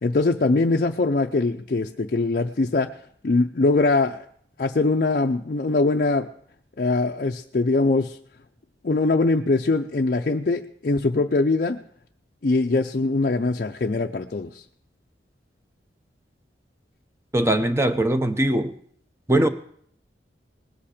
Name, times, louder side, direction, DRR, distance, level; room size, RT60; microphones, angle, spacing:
voice 1, 0.0-2.9 3.2-4.2 4.6-6.3 6.8-8.2 8.8-11.8 12.4-14.6, left 3 dB, 50° left, 2 dB, 0.5 m, -22 dB
voice 2, 17.3-18.7 19.3-19.5, right 1 dB, 15° right, 9 dB, 0.8 m, -20 dB
20.0 x 8.6 x 5.0 m, 0.63 s
head